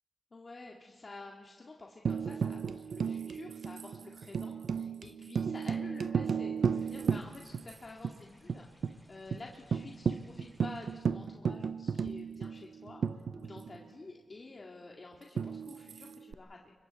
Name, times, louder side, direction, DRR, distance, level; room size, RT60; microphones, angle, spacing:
voice 1, 0.3-16.7, left 3 dB, 40° left, -1 dB, 2.1 m, -50 dB
Tambourine, 2.1-7.7 8.0-8.1 8.5-9.0 9.3-9.4 9.7-13.8 15.4-16.3, right 6 dB, 70° right, 0.5 m, -34 dB
sound 1, 6.7-11.1, left 1 dB, 10° left, 6.3 m, -63 dB
29.0 x 24.0 x 4.2 m, 1.5 s
cardioid pair, 80°, 0 cm